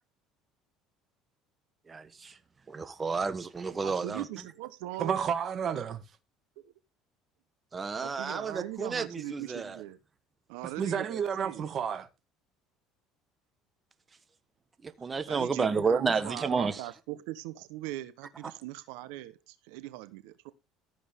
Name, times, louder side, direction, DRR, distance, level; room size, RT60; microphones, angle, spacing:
voice 1, 1.9-2.4 2.7-4.2 7.7-9.8 14.8-16.8, right 5 dB, 25° right, 1.2 m, -31 dB
voice 2, 3.8-5.2 8.0-10.0 10.5-11.7 15.3-20.5, right 15 dB, 85° right, 1.0 m, -40 dB
voice 3, 5.0-6.0 10.8-12.1, right 7 dB, 45° right, 1.9 m, -31 dB
14.0 x 7.9 x 3.6 m
supercardioid pair, 110°, 0 cm